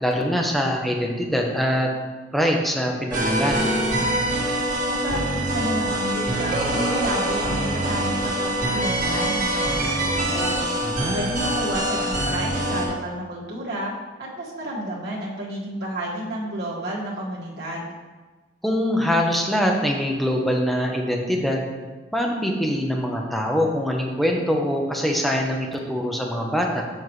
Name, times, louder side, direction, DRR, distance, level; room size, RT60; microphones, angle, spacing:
voice 1, 0.0-1.9 2.3-3.7 10.8-11.2 18.6-21.7 22.1-26.8, equal, ahead, 0 dB, 0.9 m, -23 dB
sound 1, 3.1-12.9, right 1 dB, 50° right, 2.0 m, -24 dB
voice 2, 4.8-10.6 11.1-13.9 14.2-17.9, right 1 dB, 65° right, -6 dB, 1.7 m, -31 dB
7.4 x 7.1 x 3.2 m, 1.3 s
head